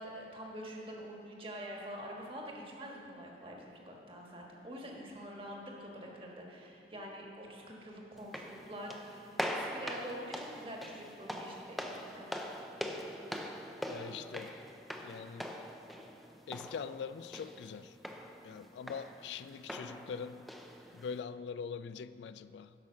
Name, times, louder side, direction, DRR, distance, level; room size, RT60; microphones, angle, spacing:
voice 1, 0.0-12.3, equal, 30° right, -1 dB, 1.4 m, -46 dB
sound 1, 8.2-21.2, equal, ahead, 0.5 m, -43 dB
voice 2, 13.9-14.5 15.0-15.5 16.5-18.0 18.4-20.5 20.9-22.7, left 6 dB, 80° left, 14 dB, 0.3 m, -43 dB
10.5 x 5.6 x 6.3 m, 2.8 s
head